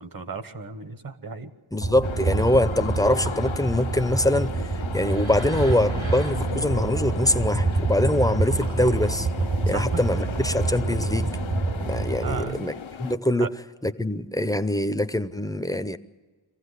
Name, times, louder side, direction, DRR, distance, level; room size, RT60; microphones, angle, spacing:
voice 1, 0.0-1.5 9.7-10.2 12.2-12.7 13.4-13.5, right 4 dB, 45° right, 1.3 m, -35 dB
voice 2, 1.7-9.3 9.7-11.4 11.8-12.7 13.0-13.6 13.8-16.0, left 1 dB, 10° left, 0.6 m, -24 dB
sound 1, 1.8-12.4, right 3 dB, 75° right, 3.4 m, -27 dB
sound 2, 2.0-13.2, left 7 dB, 75° left, 0.8 m, -37 dB
24.0 x 15.5 x 8.2 m
wide cardioid pair, 90°, 48 cm